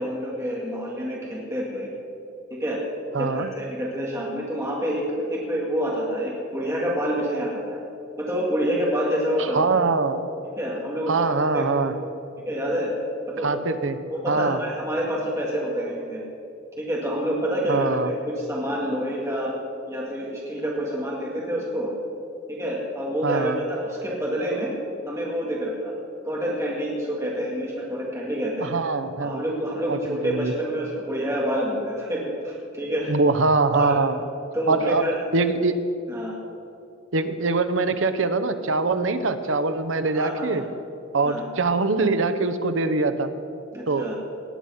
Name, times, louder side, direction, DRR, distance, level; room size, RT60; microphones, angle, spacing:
voice 1, 0.0-1.9 2.6-2.8 3.2-7.8 8.2-9.8 10.6-11.3 11.5-11.6 12.5-12.9 13.4-13.5 14.1-16.2 16.8-19.5 19.9-21.9 22.6-24.7 25.1-25.9 26.2-28.7 29.2-33.2 33.7-34.0 34.5-35.2 36.1-36.3 40.1-40.6 41.2-41.4 43.7-44.1, equal, 15° right, -4 dB, 1.9 m, -27 dB
voice 2, 3.1-3.5 9.4-10.2 11.1-11.9 13.4-14.0 14.3-14.6 17.7-18.1 23.2-23.6 28.6-29.4 29.9-30.5 33.1-34.2 34.7-35.0 35.3-35.8 37.1-40.6 41.1-43.3 43.9-44.1, right 3 dB, 70° right, 9 dB, 0.9 m, -23 dB
18.5 x 8.7 x 5.6 m, 2.7 s
head